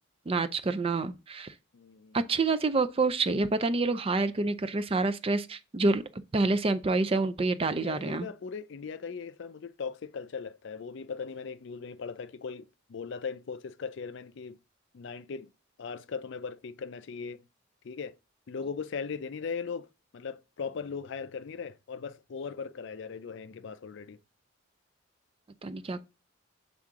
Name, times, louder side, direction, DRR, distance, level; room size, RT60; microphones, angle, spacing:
voice 1, 0.3-1.5 2.1-8.3 25.6-26.0, right 3 dB, 30° right, 0.4 m, -28 dB
voice 2, 1.7-2.2 7.8-14.6 14.9-15.5 15.8-17.4 17.8-18.2 18.5-19.9 20.1-24.2, left 5 dB, 60° left, 0.4 m, -39 dB
7.4 x 3.7 x 3.6 m
head